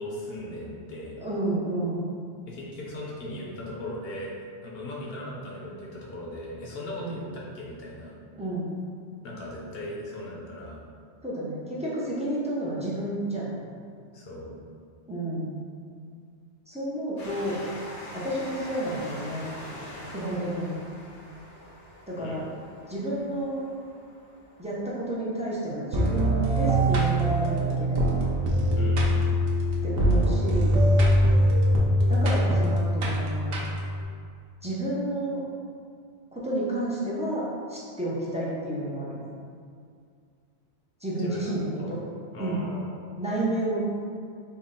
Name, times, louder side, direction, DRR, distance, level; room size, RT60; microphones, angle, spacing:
voice 1, 0.0-1.1 2.5-4.4 4.6-8.2 9.2-10.8 14.1-14.6 22.2-22.4 28.8-29.1 41.2-41.9 42.3-43.0, left 1 dB, 65° left, -3 dB, 0.9 m, -38 dB
voice 2, 1.2-2.1 7.0-7.2 8.4-8.7 11.2-13.6 15.1-15.6 16.7-17.6 18.1-19.5 20.1-20.8 22.1-22.4 22.9-23.6 24.6-28.1 29.8-30.8 32.1-33.6 34.6-35.4 36.3-39.2 41.0-42.0 42.4-42.6 43.2-43.8, right 1 dB, 10° right, -8 dB, 0.4 m, -30 dB
Train, 17.2-28.3 29.1-29.2 29.4-29.5, left 1 dB, 85° left, 1.2 m, -44 dB
sound 1, 25.9-34.0, equal, 65° right, 0.8 m, -23 dB
3.8 x 2.1 x 3.8 m, 2.2 s
omnidirectional pair, 1.2 m